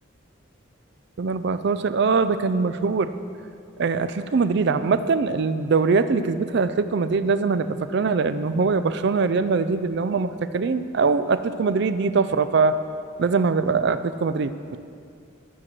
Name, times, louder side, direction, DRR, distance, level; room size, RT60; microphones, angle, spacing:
voice 1, 1.2-3.1 3.8-12.8 13.2-14.8, right 4 dB, 55° right, 12 dB, 0.4 m, -22 dB
13.5 x 4.6 x 7.5 m, 2.4 s
head